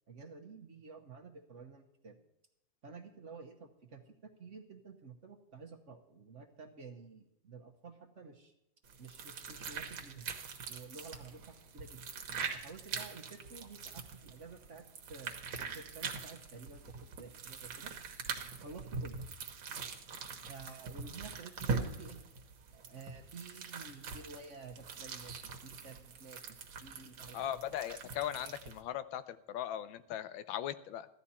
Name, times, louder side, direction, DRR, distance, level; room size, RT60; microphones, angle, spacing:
voice 1, 0.1-2.1 2.8-8.5 9.0-10.3 10.7-12.0 12.5-16.8 17.2-17.9 18.5-19.2 20.5-22.2 22.7-26.5 26.8-27.4, right 4 dB, 45° right, 4 dB, 1.2 m, -51 dB
sound 1, 8.8-28.8, right 5 dB, 80° right, 2.1 m, -43 dB
voice 2, 27.3-31.1, left 11 dB, 85° left, 13 dB, 1.5 m, -39 dB
15.5 x 12.0 x 4.3 m, 0.81 s
omnidirectional pair, 2.1 m